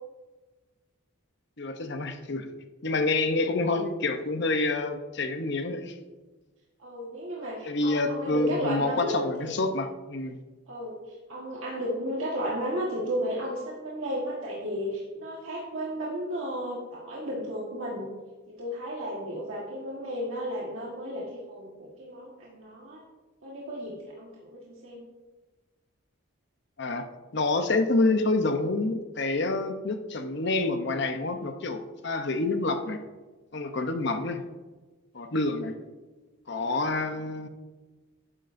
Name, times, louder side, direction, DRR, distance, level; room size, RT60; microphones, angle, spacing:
voice 1, 1.6-2.5 2.8-5.9 7.7-10.4 26.8-27.1 27.3-33.0 33.5-34.4 35.1-35.7 36.5-37.5, left 2 dB, 55° left, 7 dB, 0.8 m, -27 dB
voice 2, 6.8-9.5 10.7-11.0 11.3-18.1 18.5-23.0 23.4-25.0 27.9-28.0, equal, 70° right, -4 dB, 1.5 m, -34 dB
12.0 x 9.8 x 2.6 m, 1.3 s
head